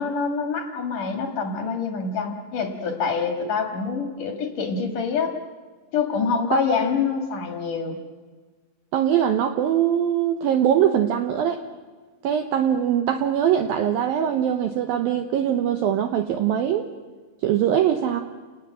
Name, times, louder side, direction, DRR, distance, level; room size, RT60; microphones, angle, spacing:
voice 1, 0.0-5.4 5.9-8.0, left 5 dB, 55° left, 4 dB, 2.7 m, -26 dB
voice 2, 8.9-11.6 12.2-16.9 17.4-18.2, right 9 dB, 80° right, 7 dB, 2.1 m, -22 dB
29.0 x 19.5 x 7.6 m, 1.4 s
omnidirectional pair, 5.5 m